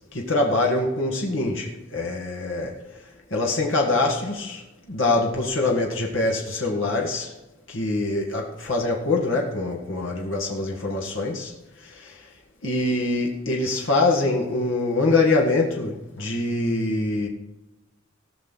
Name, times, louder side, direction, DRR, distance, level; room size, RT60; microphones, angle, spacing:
voice 1, 0.1-2.8 3.3-4.6 4.9-7.3 7.7-11.5 11.9-12.1 12.6-17.3, left 2 dB, 70° left, 1.9 m, -24 dB
19.0 x 6.5 x 4.2 m
head